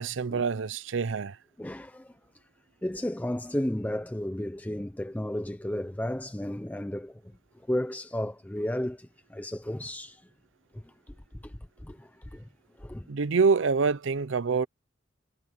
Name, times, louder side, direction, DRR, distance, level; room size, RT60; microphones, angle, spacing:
voice 1, 0.0-1.4 13.1-14.7, right 5 dB, 80° right, 0.6 m, -26 dB
voice 2, 1.6-2.1 2.8-7.2 7.7-10.2 10.7-11.1 11.4-11.5 11.8-12.4 12.8-13.1, left 1 dB, 10° left, 0.5 m, -33 dB
head